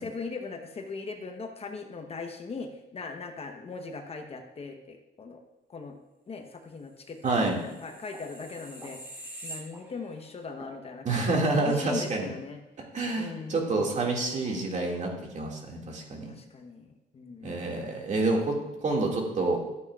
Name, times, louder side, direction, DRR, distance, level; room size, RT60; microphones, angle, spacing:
voice 1, 0.0-5.4 5.7-6.0 6.3-7.2 7.5-9.0 9.4-12.6 13.2-14.0 16.3-16.9 17.1-17.7, left 4 dB, 35° left, 5 dB, 0.9 m, -39 dB
voice 2, 7.2-7.6 11.0-12.3 12.9-16.3 17.4-18.5 18.8-19.6, right 3 dB, 40° right, 0 dB, 2.0 m, -28 dB
sound 1, 7.3-10.2 10.6-10.8, right 1 dB, 10° right, 3.6 m, -45 dB
12.5 x 8.3 x 2.4 m, 0.99 s
cardioid pair, 110°, 18 cm